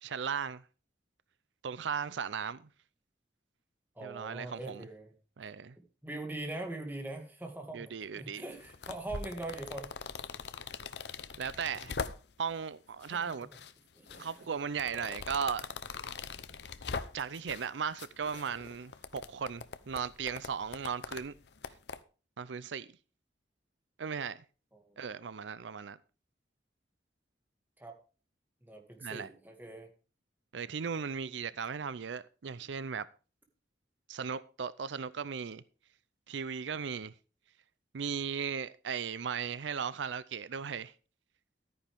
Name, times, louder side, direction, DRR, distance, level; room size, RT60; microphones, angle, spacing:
voice 1, 0.0-0.6 1.6-2.6 4.0-4.8 5.4-5.8 7.7-8.4 11.4-12.0 12.4-13.5 14.2-15.7 17.1-21.3 22.4-22.9 24.0-24.4 25.0-26.0 29.0-29.3 30.5-33.1 34.1-35.6 36.3-37.1 37.9-40.9, right 6 dB, 90° right, 0.5 m, -37 dB
voice 2, 4.0-5.1 5.8-9.9 13.9-14.5 14.9-15.1 24.7-25.3 27.8-28.0 28.6-29.9, right 2 dB, 10° right, 2.2 m, -42 dB
sound 1, 8.5-12.5 13.0-13.7 14.1-17.7 18.0-22.0, left 5 dB, 70° left, 0.8 m, -42 dB
13.0 x 9.7 x 3.5 m
head